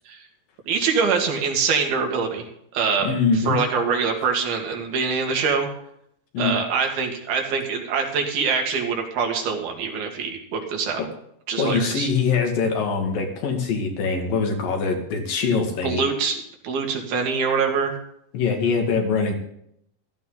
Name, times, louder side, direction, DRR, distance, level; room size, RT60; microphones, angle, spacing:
voice 1, 0.7-2.5 2.7-5.7 6.4-11.0 11.5-12.1 15.3-15.4 15.8-16.4 16.6-17.9, right 5 dB, 80° right, 3 dB, 4.1 m, -24 dB
voice 2, 3.0-3.6 6.3-6.5 11.6-16.0 18.3-19.3, left 5 dB, 65° left, 3 dB, 3.8 m, -23 dB
15.0 x 14.0 x 4.0 m, 0.71 s
omnidirectional pair, 4.4 m